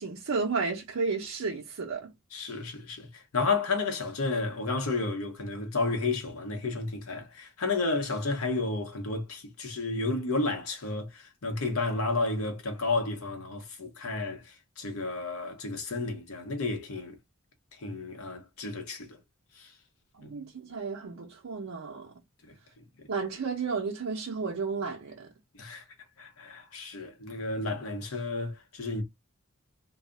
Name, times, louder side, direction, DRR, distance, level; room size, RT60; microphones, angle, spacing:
voice 1, 0.0-2.1 20.2-22.1 23.1-25.3, right 4 dB, 85° right, 0.6 m, -32 dB
voice 2, 2.3-17.2 17.8-19.2 19.6-19.7 20.2-20.3 22.5-22.6 23.0-23.1 25.5-25.8 26.2-29.0, left 3 dB, 85° left, 0.8 m, -32 dB
2.3 x 2.0 x 3.5 m
head